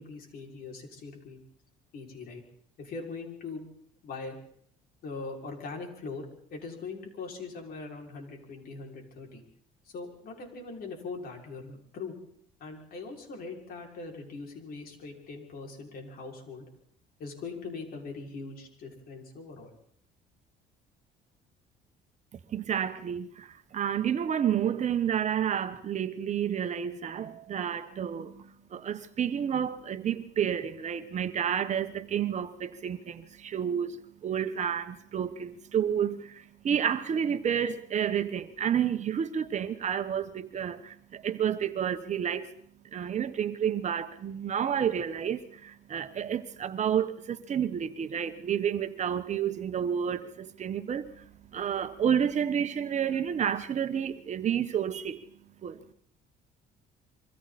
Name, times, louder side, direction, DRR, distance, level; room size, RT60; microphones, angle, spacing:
voice 1, 0.0-1.4 1.9-2.4 2.8-3.7 4.0-4.4 5.0-9.4 9.8-12.1 12.6-16.7 17.2-19.7, left 4 dB, 60° left, 6.3 m, -41 dB
voice 2, 22.5-42.5 42.9-55.3 55.6-55.8, right 8 dB, 45° right, 1.4 m, -30 dB
27.5 x 24.0 x 4.4 m
cardioid pair, 110°, 17 cm